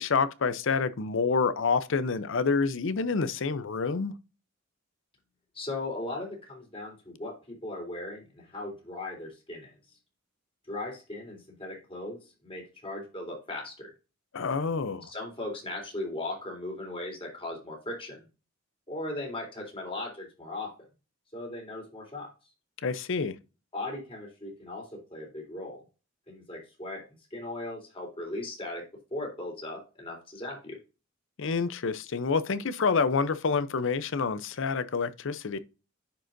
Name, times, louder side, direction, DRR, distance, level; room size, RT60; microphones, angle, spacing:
voice 1, 0.0-4.1 14.3-15.1 22.8-23.3 31.4-35.6, left 5 dB, 65° left, 0.6 m, -28 dB
voice 2, 5.5-9.7 10.7-13.9 15.0-18.3 18.9-20.7 21.3-22.3 23.7-25.8 26.3-27.0 27.3-28.8 29.1-30.8, left 2 dB, 30° left, 3.6 m, -38 dB
10.5 x 5.0 x 2.6 m
head